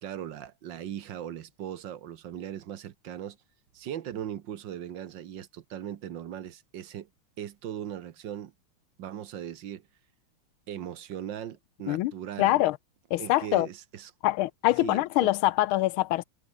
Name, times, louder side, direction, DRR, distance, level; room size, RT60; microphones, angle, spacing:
voice 1, 0.0-3.4 3.7-7.1 7.4-8.5 9.0-9.9 10.7-12.6 13.2-14.1 14.8-15.3, right 10 dB, 65° right, 1.6 m, -39 dB
voice 2, 12.4-12.8 13.1-13.7 14.2-16.2, left 16 dB, 85° left, 1.5 m, -24 dB
omnidirectional pair, 2.3 m